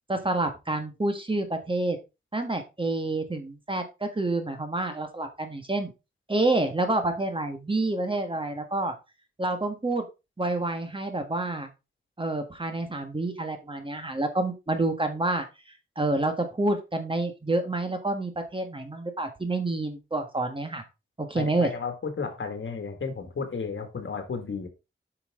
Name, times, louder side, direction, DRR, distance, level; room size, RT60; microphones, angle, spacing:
voice 1, 0.1-2.0 2.3-5.9 6.3-8.9 9.4-10.0 10.4-11.7 12.2-15.4 16.0-20.8 21.2-21.7, right 2 dB, 25° right, 6 dB, 1.5 m, -28 dB
voice 2, 21.3-24.7, left 5 dB, 70° left, 5 dB, 2.0 m, -33 dB
8.4 x 5.8 x 3.7 m, 0.26 s
wide cardioid pair, 120°, 21 cm